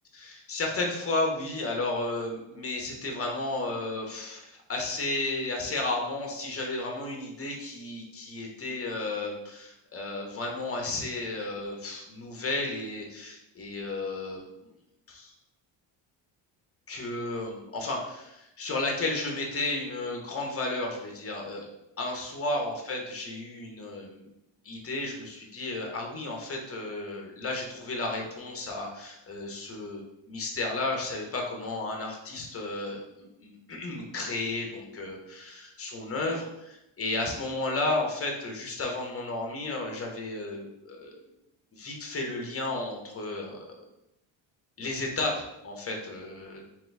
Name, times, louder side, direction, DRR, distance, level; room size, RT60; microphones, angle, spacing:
voice 1, 0.1-14.5 15.1-15.3 16.9-21.7 22.0-24.2 24.6-41.2 41.7-43.7 44.8-46.7, left 2 dB, 25° left, 1 dB, 1.1 m, -33 dB
3.8 x 2.9 x 3.4 m, 0.85 s
cardioid pair, 85°, 50 cm